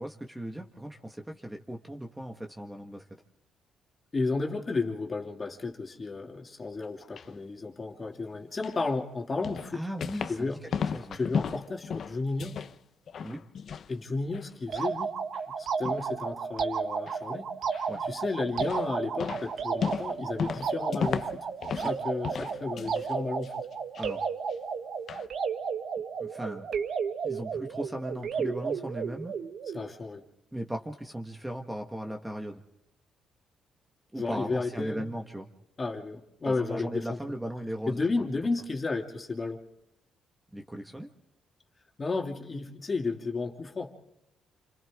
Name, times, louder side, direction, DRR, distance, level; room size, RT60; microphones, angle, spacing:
voice 1, 0.0-3.0 9.7-11.2 13.2-13.4 17.9-18.0 21.8-21.9 24.0-24.3 26.2-26.7 27.2-29.3 30.5-32.6 34.1-35.5 36.4-38.5 40.5-41.1, right 1 dB, 10° right, 3 dB, 1.7 m, -37 dB
voice 2, 4.1-9.8 10.3-10.6 11.2-12.5 13.9-15.1 15.6-17.5 18.1-21.5 21.8-23.5 29.7-30.2 34.2-35.0 35.8-37.2 37.9-39.6 42.0-44.0, left 3 dB, 30° left, 2 dB, 2.7 m, -32 dB
sound 1, 6.8-7.3 8.6-8.8 9.4-10.4 10.7-12.8 13.1-13.9 14.2-14.9 15.3-15.4 15.8-16.1 17.1-17.2 17.7-18.1 18.6-18.9 19.2-22.0 22.2-23.1 23.4-24.1 24.5-24.6 25.1-25.3, left 7 dB, 60° left, 0.9 m, -35 dB
sound 2, 14.7-29.9, right 6 dB, 65° right, 1.7 m, -33 dB
28.5 x 26.0 x 3.7 m, 0.89 s
cardioid pair, 90°, 0 cm